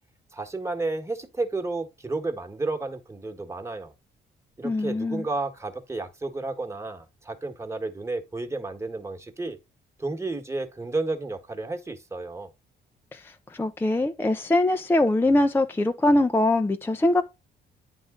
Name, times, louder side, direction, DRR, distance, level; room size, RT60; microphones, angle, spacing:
voice 1, 0.3-3.9 4.6-9.6 10.0-12.5, right 3 dB, 15° right, 1.4 m, -32 dB
voice 2, 4.6-5.2 13.1-17.2, left 2 dB, 10° left, 0.5 m, -23 dB
9.3 x 3.7 x 3.7 m
cardioid pair, 90°, 20 cm